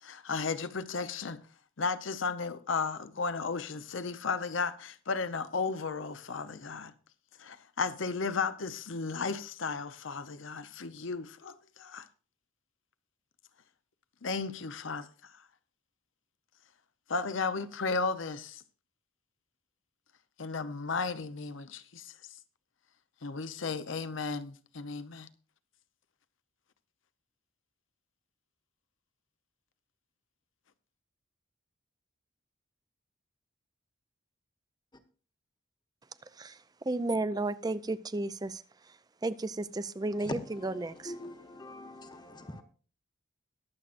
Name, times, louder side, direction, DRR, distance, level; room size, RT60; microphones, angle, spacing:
voice 1, 0.0-1.4 1.8-6.9 7.4-12.1 14.2-15.3 17.1-18.6 20.4-22.1 23.2-25.3, left 4 dB, 70° left, 0.8 m, -34 dB
voice 2, 36.3-38.6 38.9-39.0 39.2-41.1, right 2 dB, 20° right, 0.5 m, -33 dB
voice 3, 41.0-42.6, left 1 dB, 20° left, 1.1 m, -41 dB
22.0 x 7.5 x 2.5 m
head